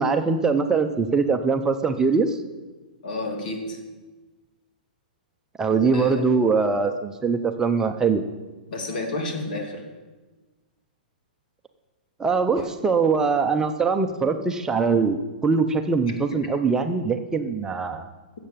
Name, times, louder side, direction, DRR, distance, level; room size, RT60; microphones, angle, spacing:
voice 1, 0.0-2.4 5.6-8.2 12.2-18.1, right 4 dB, 10° right, 6 dB, 0.8 m, -22 dB
voice 2, 3.0-3.8 5.9-6.3 8.7-9.8 12.6-12.7 16.3-16.4, left 2 dB, 65° left, 4 dB, 2.8 m, -30 dB
13.5 x 7.8 x 7.4 m, 1.3 s
hypercardioid pair, 135°, 5 cm